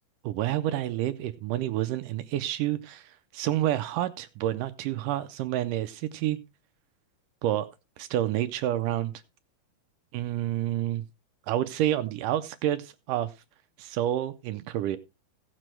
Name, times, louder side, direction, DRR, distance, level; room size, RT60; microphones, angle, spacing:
voice 1, 0.2-6.4 7.4-7.7 8.0-9.1 10.1-11.0 11.5-13.3 13.8-15.0, right 13 dB, 80° right, 2.0 m, -29 dB
17.0 x 7.6 x 3.2 m
omnidirectional pair, 4.3 m